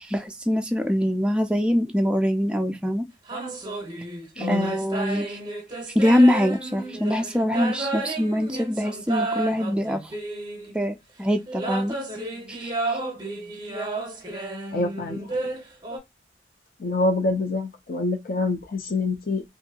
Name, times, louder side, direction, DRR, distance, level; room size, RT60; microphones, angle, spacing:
voice 1, 0.0-3.1 4.4-5.4 6.0-10.0 10.7-12.0 12.5-12.7, equal, 5° right, 0.3 m, -23 dB
sound 1, 3.3-10.9 11.5-16.0, right 2 dB, 25° right, 0.7 m, -32 dB
voice 2, 4.4-4.7 14.7-15.5 16.8-19.4, left 2 dB, 55° left, 0.5 m, -26 dB
2.7 x 2.5 x 2.7 m
head